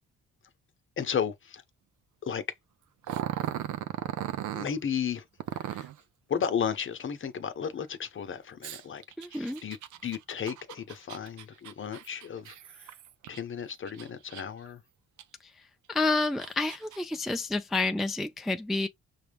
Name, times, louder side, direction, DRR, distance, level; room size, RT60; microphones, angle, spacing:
voice 1, 1.0-1.6 2.2-2.4 4.5-5.2 5.5-5.9 6.3-9.0 9.3-9.8 10.0-12.9 13.3-14.8, left 7 dB, 40° left, 0.8 m, -34 dB
Growling, 3.0-4.7 5.4-6.0 8.6-13.4 13.9-14.7 15.2-15.3 16.0-17.0, right 12 dB, 75° right, 0.6 m, -37 dB
voice 2, 9.2-9.6 15.9-18.9, left 3 dB, ahead, 0.4 m, -29 dB
5.8 x 2.2 x 3.4 m
cardioid pair, 90°, 30 cm